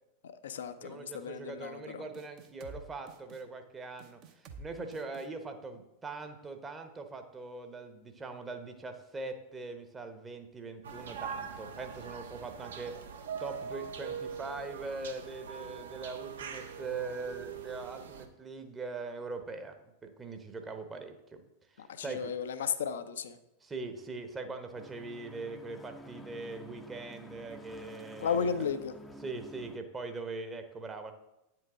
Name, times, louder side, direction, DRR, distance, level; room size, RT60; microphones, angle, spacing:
voice 1, 0.2-2.0 21.8-23.4 28.2-29.0, left 6 dB, 60° left, 11 dB, 0.6 m, -34 dB
voice 2, 0.8-12.9 13.4-19.7 20.0-21.4 21.7-22.3 23.6-28.6 29.2-31.1, right 3 dB, 15° right, 6 dB, 1.0 m, -41 dB
sound 1, 2.1-2.8 3.1-3.4 4.0-4.6 4.9-5.3, right 3 dB, 40° right, 0.9 m, -49 dB
sound 2, 10.8-18.2, right 6 dB, 65° right, 0.8 m, -42 dB
sound 3, 24.7-29.8, left 1 dB, 10° left, 0.7 m, -50 dB
9.3 x 7.6 x 3.8 m, 0.91 s
figure-of-eight pair, 90°, 0 cm